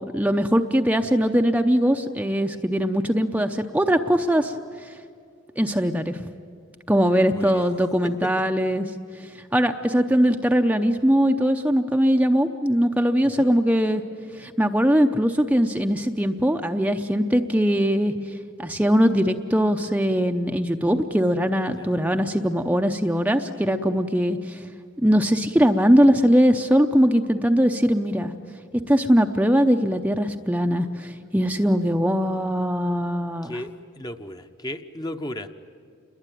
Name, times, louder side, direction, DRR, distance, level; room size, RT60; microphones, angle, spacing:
voice 1, 0.0-4.5 5.6-6.3 6.9-8.9 9.5-14.0 14.4-18.1 18.6-24.6 25.0-28.3 28.9-33.6, equal, 10° right, 5 dB, 0.7 m, -21 dB
voice 2, 7.3-7.6 8.2-8.3 13.2-13.5 21.8-22.0 33.4-33.7 34.0-35.5, left 1 dB, 20° left, 8 dB, 0.9 m, -35 dB
28.5 x 22.0 x 9.2 m, 2.2 s
head